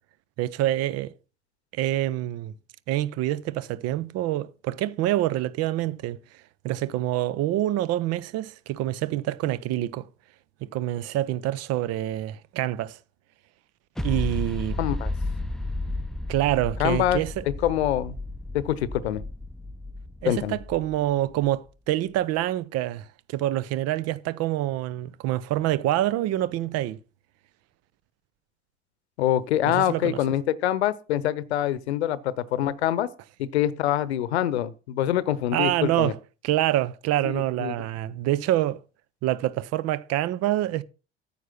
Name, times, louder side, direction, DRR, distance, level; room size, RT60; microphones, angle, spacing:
voice 1, 0.4-1.1 1.7-2.5 2.9-6.2 6.6-10.1 10.6-13.0 14.0-14.8 16.3-17.4 20.2-27.0 29.6-30.2 35.5-36.2 36.4-38.8 39.2-40.8, right 14 dB, 50° right, 0.7 m, -26 dB
sound 1, 14.0-21.5, left 2 dB, ahead, 0.6 m, -33 dB
voice 2, 14.8-15.1 16.8-18.2 18.5-19.2 20.2-20.6 29.2-33.1 33.4-36.1 37.2-37.8, left 12 dB, 75° left, 0.8 m, -25 dB
9.3 x 7.1 x 5.8 m
figure-of-eight pair, 60°, 33 cm